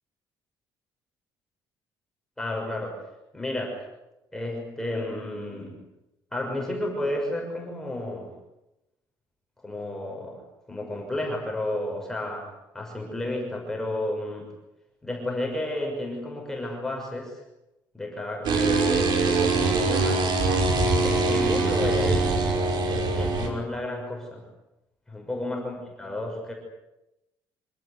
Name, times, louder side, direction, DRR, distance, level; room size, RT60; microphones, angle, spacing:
voice 1, 2.4-3.1 3.3-3.9 4.3-5.8 6.3-8.3 9.6-10.4 10.7-12.5 12.7-14.5 15.0-17.4 17.9-20.3 21.0-22.4 22.9-24.4 25.1-26.5, left 1 dB, 5° left, -1 dB, 6.3 m, -32 dB
sound 1, 18.4-23.5, right 3 dB, 55° right, 5.6 m, -23 dB
26.5 x 18.0 x 9.8 m, 0.92 s
cardioid pair, 175°, 9 cm